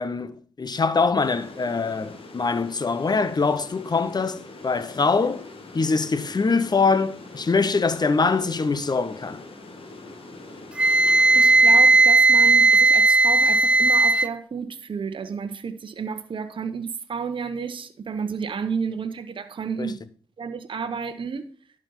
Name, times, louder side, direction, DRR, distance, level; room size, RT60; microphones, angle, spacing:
voice 1, 0.0-5.5 5.7-9.4 19.8-19.9, left 4 dB, 45° left, 1.0 m, -23 dB
sound 1, 1.2-12.0, left 2 dB, 65° left, 2.1 m, -43 dB
Wind instrument woodwind instrument, 10.8-14.3, right 3 dB, 10° right, 0.5 m, -16 dB
voice 2, 11.3-20.0 20.4-21.5, right 6 dB, 55° right, 0.9 m, -31 dB
11.5 x 5.3 x 5.5 m
supercardioid pair, 45°, 10 cm